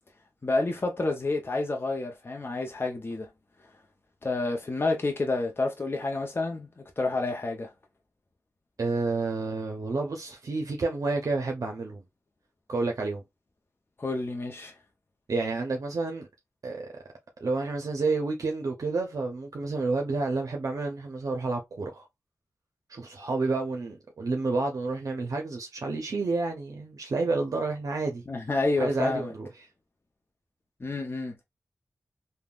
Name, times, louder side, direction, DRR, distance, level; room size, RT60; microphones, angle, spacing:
voice 1, 0.4-3.3 4.2-7.7 14.0-14.7 28.3-29.3 30.8-31.4, left 2 dB, 40° left, 0.6 m, -29 dB
voice 2, 8.8-12.0 12.7-13.2 15.3-16.3 16.6-16.9 17.4-22.1 22.9-28.2 28.8-29.5, right 3 dB, 65° right, 0.6 m, -30 dB
3.4 x 2.1 x 2.4 m
cardioid pair, 55°, 6 cm